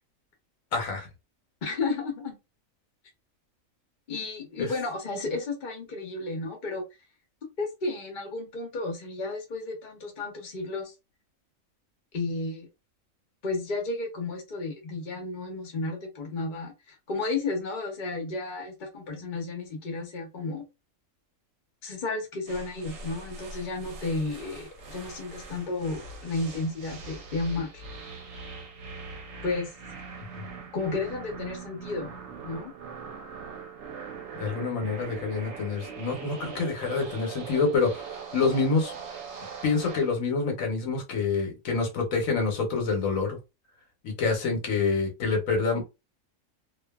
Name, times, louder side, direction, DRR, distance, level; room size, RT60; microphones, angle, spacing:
voice 1, 0.7-1.1 4.6-4.7 34.4-38.9 39.6-43.4 44.0-45.8, left 4 dB, 80° left, 1.3 m, -27 dB
voice 2, 1.6-2.4 4.1-6.8 7.6-10.9 12.1-12.7 13.4-20.6 21.8-27.8 29.4-29.7 30.7-32.1 32.4-32.7, left 3 dB, 40° left, 0.9 m, -32 dB
sound 1, 22.5-40.2, right 5 dB, 65° right, 0.9 m, -42 dB
2.7 x 2.4 x 2.3 m
omnidirectional pair, 1.4 m